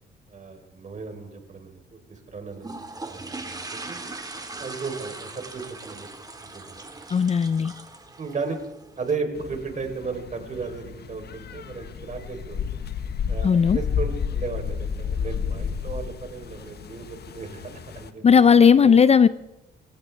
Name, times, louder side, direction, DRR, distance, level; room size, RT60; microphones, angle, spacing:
voice 1, 0.3-4.0 4.6-6.1 6.4-6.9 8.2-8.6 9.0-12.8 13.3-18.2 18.8-18.9, right 4 dB, 40° right, 4 dB, 3.8 m, -35 dB
sound 1, 2.6-9.1, right 3 dB, 20° right, 1.9 m, -39 dB
voice 2, 7.1-7.7 13.4-13.8 18.2-19.3, left 6 dB, 30° left, 15 dB, 0.5 m, -16 dB
sound 2, 9.4-18.1, left 7 dB, 55° left, 1.2 m, -31 dB
27.0 x 15.0 x 3.4 m, 0.90 s
cardioid pair, 90°, 20 cm